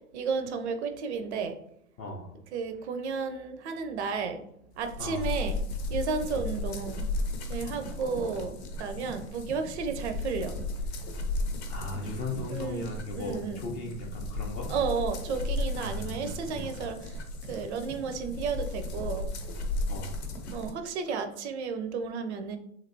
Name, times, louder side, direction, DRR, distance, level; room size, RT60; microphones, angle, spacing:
voice 1, 0.1-1.5 2.5-4.4 4.8-5.6 5.9-7.1 7.5-8.5 8.8-10.6 12.5-12.9 13.1-13.6 14.7-17.2 17.5-19.3 20.5-22.6, right 5 dB, 50° right, 8 dB, 0.5 m, -32 dB
voice 2, 2.0-2.3 5.0-5.3 11.7-14.7 15.8-16.6 19.9-20.2, left 2 dB, 20° left, 0 dB, 0.4 m, -37 dB
sound 1, 4.8-20.7, left 2 dB, 45° left, 0.8 m, -35 dB
3.2 x 2.7 x 2.5 m, 0.74 s
hypercardioid pair, 110°, 44 cm